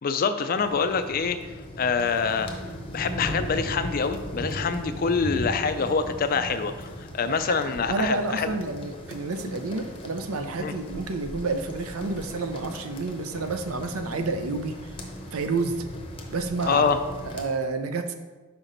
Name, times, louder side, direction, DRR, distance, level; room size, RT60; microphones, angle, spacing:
voice 1, 0.0-1.5 1.8-2.5 2.9-6.9 7.1-8.5 10.6-10.7 16.7-17.0, left 5 dB, 40° left, 10 dB, 0.3 m, -25 dB
sound 1, 0.5-17.5, equal, 25° left, 0.7 m, -37 dB
voice 2, 7.9-14.8 15.3-15.8 16.3-16.9 17.3-18.1, right 3 dB, 75° right, 8 dB, 0.6 m, -29 dB
5.9 x 5.0 x 3.9 m, 1.3 s
head